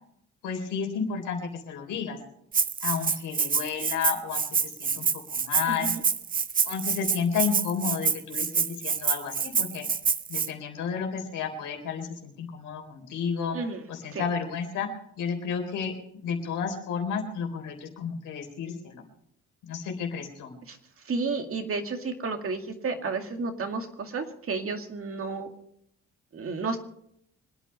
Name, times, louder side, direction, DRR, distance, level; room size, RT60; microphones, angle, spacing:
voice 1, 0.4-2.2 2.8-5.9 6.7-9.9 10.3-13.6 13.9-14.9 15.2-15.9 16.2-19.0 19.6-20.5, left 6 dB, 85° left, 3 dB, 3.7 m, -32 dB
Rattle (instrument), 2.5-10.5, right 6 dB, 30° right, 0.7 m, -27 dB
voice 2, 5.7-6.0 13.5-13.9 14.1-14.2 20.7-20.8 21.1-25.5 26.3-26.8, right 4 dB, 45° right, 5 dB, 2.2 m, -32 dB
25.0 x 9.4 x 5.5 m, 0.73 s
cardioid pair, 90°, 30 cm